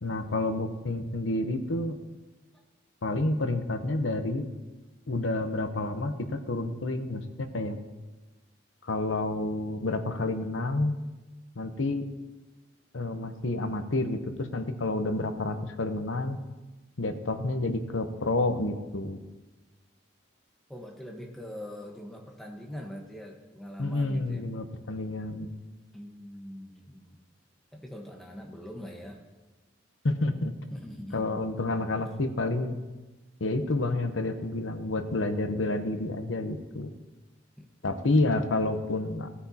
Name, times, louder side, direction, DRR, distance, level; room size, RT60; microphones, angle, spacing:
voice 1, 0.0-2.0 3.0-4.4 5.1-7.8 8.8-10.9 11.6-12.0 12.9-16.4 17.0-19.2 23.8-25.5 30.0-30.5 31.1-32.8 33.4-36.9 37.8-39.3, left 2 dB, 80° left, 7 dB, 0.9 m, -29 dB
voice 2, 20.7-24.5 25.9-27.2 27.7-29.2 30.7-31.4 37.6-37.7, equal, ahead, 0 dB, 1.2 m, -42 dB
17.5 x 9.8 x 2.9 m, 1.2 s
head